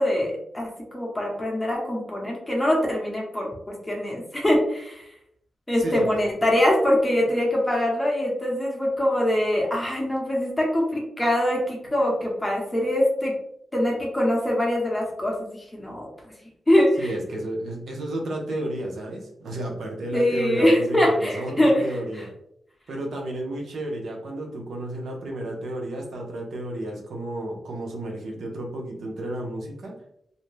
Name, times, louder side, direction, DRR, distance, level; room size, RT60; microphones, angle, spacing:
voice 1, 0.0-5.1 5.7-13.3 13.7-16.3 16.7-17.1 20.1-21.9 22.1-22.2, left 1 dB, 15° left, -3 dB, 0.8 m, -23 dB
voice 2, 5.8-6.1 17.0-22.3 22.9-29.9, right 1 dB, 75° right, 0 dB, 0.7 m, -32 dB
2.6 x 2.1 x 3.1 m, 0.73 s
cardioid pair, 90°, 0 cm